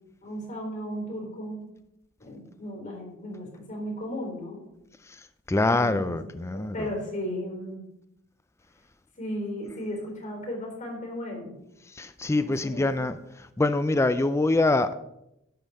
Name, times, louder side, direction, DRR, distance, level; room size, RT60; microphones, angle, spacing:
voice 1, 0.2-1.6 2.2-4.6 5.6-7.8 9.2-11.6 12.4-13.1, equal, 40° left, 0 dB, 4.1 m, -35 dB
voice 2, 5.5-6.9 12.0-13.2 13.6-14.9, left 2 dB, 15° left, 11 dB, 0.4 m, -24 dB
11.5 x 5.4 x 6.6 m, 0.84 s
head